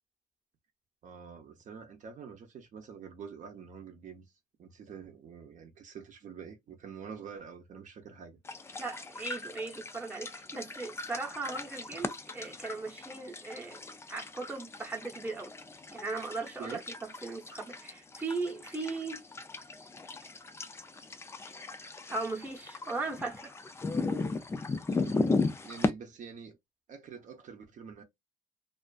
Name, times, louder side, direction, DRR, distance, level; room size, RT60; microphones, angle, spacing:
voice 1, 1.0-4.3 4.6-8.4 16.6-16.8 24.9-25.3 25.6-26.6 26.9-28.0, right 6 dB, 50° right, 0.7 m, -46 dB
sound 1, 8.4-25.9, left 3 dB, 15° left, 0.3 m, -37 dB
voice 2, 8.8-13.8 14.1-15.5 15.9-19.2 22.1-23.5, right 3 dB, 10° right, 0.8 m, -38 dB
2.4 x 2.4 x 2.3 m
cardioid pair, 110°, 17 cm